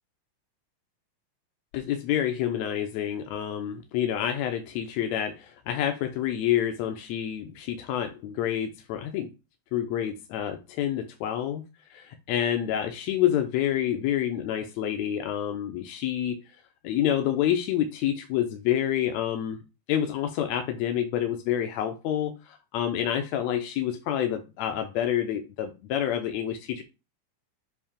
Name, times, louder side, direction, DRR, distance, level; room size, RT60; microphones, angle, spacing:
voice 1, 1.7-9.3 9.7-11.6 11.9-16.4 16.8-19.6 19.9-26.8, left 10 dB, 80° left, 6 dB, 1.7 m, -28 dB
7.3 x 2.8 x 5.0 m, 0.28 s
omnidirectional pair, 3.5 m